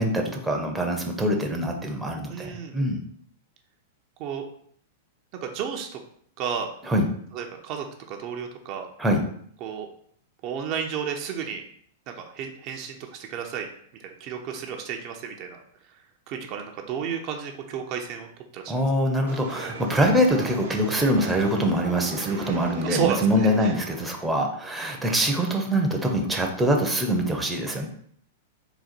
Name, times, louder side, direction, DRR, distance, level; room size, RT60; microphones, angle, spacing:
voice 1, 0.0-3.0 6.8-7.0 9.0-9.2 18.7-27.9, equal, 5° right, 1 dB, 0.7 m, -24 dB
voice 2, 2.3-2.8 4.2-4.4 5.4-6.0 6.4-6.7 7.3-8.9 9.6-9.9 10.4-11.6 12.2-13.7 14.0-15.6 16.3-18.7 22.3-23.7, right 7 dB, 45° right, 3 dB, 0.5 m, -32 dB
sound 1, 19.3-24.2, right 4 dB, 85° right, 1.0 m, -38 dB
3.9 x 2.2 x 4.3 m, 0.62 s
hypercardioid pair, 125°, 0 cm